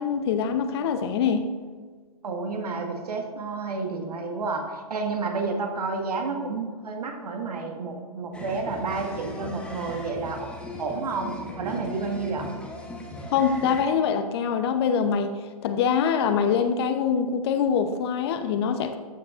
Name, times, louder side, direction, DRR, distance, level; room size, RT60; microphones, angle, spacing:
voice 1, 0.0-1.5 13.3-15.3 15.6-19.0, left 7 dB, 40° left, 9 dB, 0.7 m, -24 dB
voice 2, 2.2-12.5, right 4 dB, 75° right, 3 dB, 1.6 m, -30 dB
sound 1, 8.3-13.9, left 1 dB, 5° left, 1.0 m, -38 dB
13.0 x 7.3 x 2.5 m, 1.5 s
hypercardioid pair, 140°, 20 cm